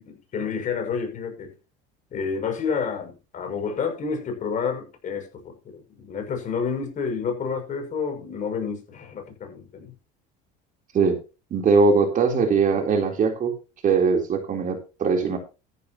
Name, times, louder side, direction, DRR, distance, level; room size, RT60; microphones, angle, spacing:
voice 1, 0.0-1.5 2.1-9.9, left 6 dB, 40° left, 6.3 m, -29 dB
voice 2, 11.5-13.5 13.8-15.4, right 4 dB, 40° right, 3.6 m, -21 dB
14.0 x 12.0 x 2.9 m
supercardioid pair, 110°, 19 cm